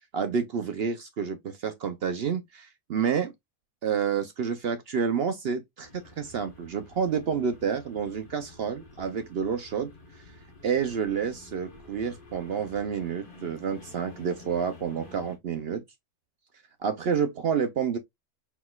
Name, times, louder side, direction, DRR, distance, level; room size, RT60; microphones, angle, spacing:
voice 1, 0.1-3.3 3.8-10.2 10.6-15.8 16.8-18.0, right 6 dB, 65° right, 0.6 m, -29 dB
sound 1, 5.8-15.4, left 2 dB, 35° left, 1.3 m, -50 dB
4.5 x 4.0 x 2.2 m
omnidirectional pair, 1.6 m